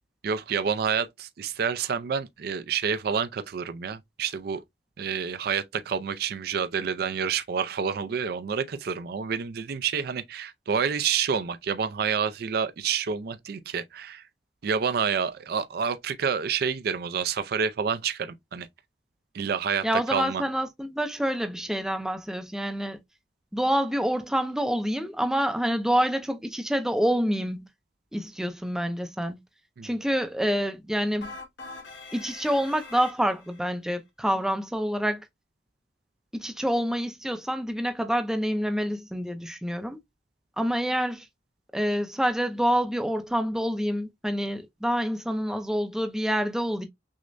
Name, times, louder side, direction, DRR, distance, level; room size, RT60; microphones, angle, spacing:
voice 1, 0.2-4.6 5.0-14.2 14.6-18.7 19.3-20.4 29.8-29.9, right 6 dB, 60° right, 0.4 m, -28 dB
voice 2, 19.8-23.0 23.5-27.7 28.1-29.4 29.8-31.3 32.1-35.2 36.3-40.0 40.6-41.3 41.7-46.9, equal, 5° right, 0.5 m, -27 dB
sound 1, 31.2-33.6, left 3 dB, 90° left, 1.6 m, -43 dB
6.2 x 2.1 x 2.5 m
head